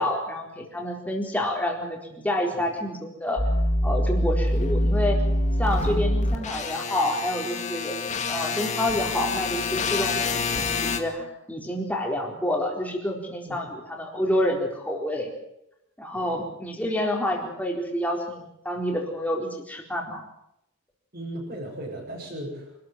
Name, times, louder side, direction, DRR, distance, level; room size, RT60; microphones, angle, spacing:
voice 1, 0.0-3.4 3.8-5.2 5.6-8.0 8.3-15.3 16.0-20.3, left 1 dB, 5° left, 1 dB, 4.2 m, -28 dB
sound 1, 3.4-11.0, left 2 dB, 35° left, 2.1 m, -25 dB
voice 2, 21.1-22.8, right 1 dB, 40° right, -6 dB, 7.4 m, -37 dB
26.5 x 13.5 x 9.2 m, 0.82 s
head